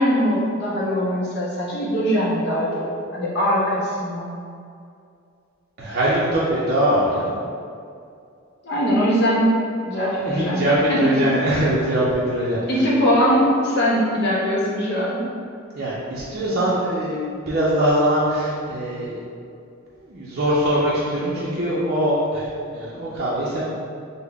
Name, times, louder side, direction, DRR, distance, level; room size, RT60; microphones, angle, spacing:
voice 1, 0.0-4.3 8.6-9.5 9.9-10.6 10.9-11.2 12.7-15.2, equal, 55° left, -6 dB, 0.8 m, -21 dB
voice 2, 5.8-7.3 9.9-12.6 15.8-19.2 20.1-22.5 22.7-23.6, right 1 dB, 50° right, -8 dB, 0.5 m, -22 dB
3.6 x 2.0 x 3.4 m, 2.4 s
head